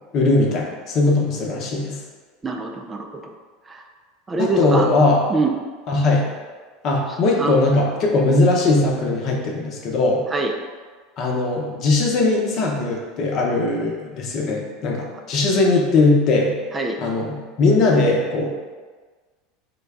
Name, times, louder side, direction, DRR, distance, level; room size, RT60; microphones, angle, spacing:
voice 1, 0.1-2.0 4.4-5.2 5.9-6.3 6.8-10.2 11.2-16.6 17.0-18.5, left 2 dB, 50° left, -1 dB, 0.8 m, -19 dB
voice 2, 2.4-3.3 3.7-3.8 4.3-4.9 5.3-5.6 7.1-7.6 10.3-10.5 16.7-17.0, right 3 dB, 20° right, 2 dB, 0.4 m, -25 dB
3.9 x 2.2 x 3.4 m, 1.4 s
hypercardioid pair, 80°, 0 cm